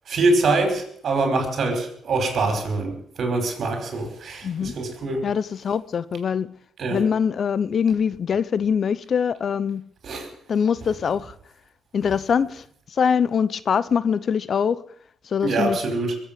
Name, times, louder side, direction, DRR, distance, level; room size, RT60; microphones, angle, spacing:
voice 1, 0.1-5.3 6.8-7.0 10.0-10.3 15.4-16.1, right 3 dB, 55° right, 5.2 m, -24 dB
voice 2, 5.2-6.5 6.9-9.8 10.5-11.3 11.9-14.8 15.2-15.8, left 7 dB, 50° left, 0.7 m, -23 dB
22.0 x 8.6 x 7.6 m
cardioid pair, 90°, 0 cm